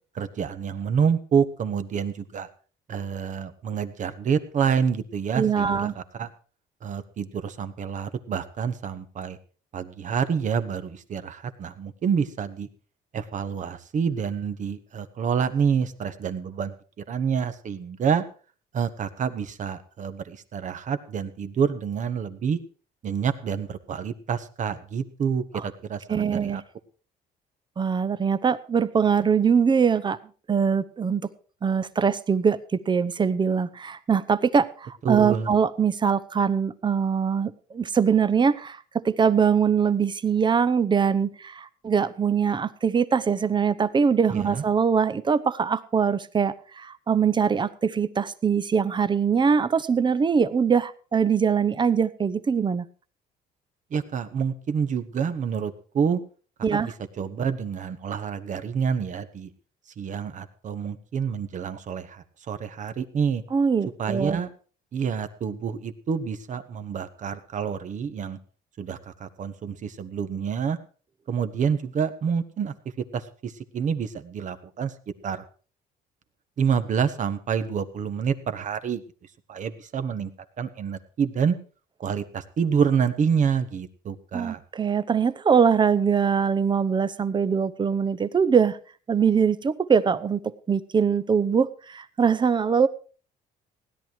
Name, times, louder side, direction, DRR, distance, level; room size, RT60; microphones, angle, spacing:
voice 1, 0.1-2.5 2.9-6.3 6.8-9.4 9.7-12.7 13.1-16.7 17.1-18.2 18.7-22.6 23.0-26.6 35.0-35.5 44.3-44.6 53.9-56.2 56.7-59.5 60.0-63.4 64.0-64.5 64.9-68.4 68.8-70.8 71.3-74.9 75.2-75.4 76.6-79.0 79.5-80.3 80.6-81.5 82.0-84.6, right 7 dB, 50° right, 11 dB, 1.4 m, -28 dB
voice 2, 5.3-5.9 25.5-25.6 26.1-26.6 27.8-30.2 30.5-31.3 31.6-52.8 56.6-56.9 63.5-64.4 84.3-88.8 89.1-92.9, right 6 dB, 25° right, 15 dB, 0.9 m, -22 dB
16.5 x 11.0 x 4.8 m, 0.39 s
cardioid pair, 110°, 17 cm